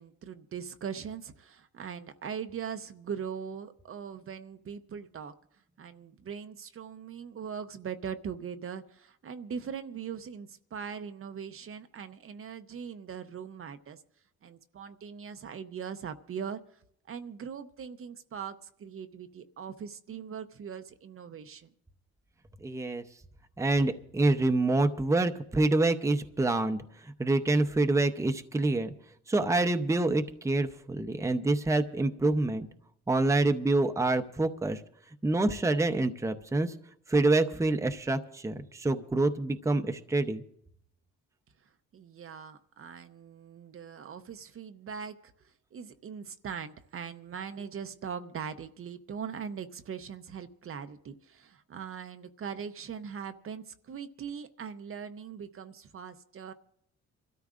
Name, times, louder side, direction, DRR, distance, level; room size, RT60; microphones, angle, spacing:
voice 1, 0.0-5.3 5.8-14.0 14.4-16.8 17.1-21.7 41.9-56.5, right 7 dB, 45° right, 9 dB, 0.7 m, -41 dB
voice 2, 22.6-23.0 23.6-28.9 29.3-32.7 33.1-34.8 35.2-36.7 37.1-40.4, right 2 dB, 10° right, 8 dB, 0.7 m, -27 dB
27.5 x 13.0 x 2.5 m, 0.70 s
cardioid pair, 90°, 30 cm